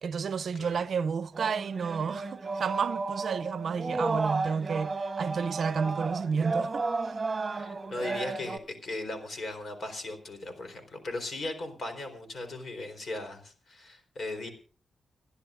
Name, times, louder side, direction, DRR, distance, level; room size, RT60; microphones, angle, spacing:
voice 1, 0.0-6.8, right 6 dB, 65° right, 0.5 m, -31 dB
sound 1, 1.3-8.6, right 3 dB, 35° right, 1.2 m, -33 dB
voice 2, 7.5-14.5, left 2 dB, 55° left, 4.0 m, -38 dB
30.0 x 11.5 x 2.5 m
cardioid pair, 90°, 0 cm